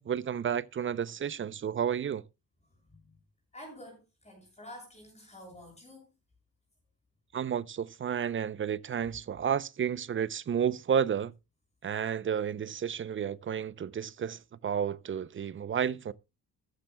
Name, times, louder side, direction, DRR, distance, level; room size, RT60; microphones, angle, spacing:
voice 1, 0.0-2.2 7.3-11.3 11.8-16.1, right 8 dB, 35° right, 0.6 m, -31 dB
voice 2, 3.5-6.0, left 1 dB, 20° left, 6.5 m, -49 dB
14.0 x 13.5 x 2.2 m
cardioid pair, 140°, 35 cm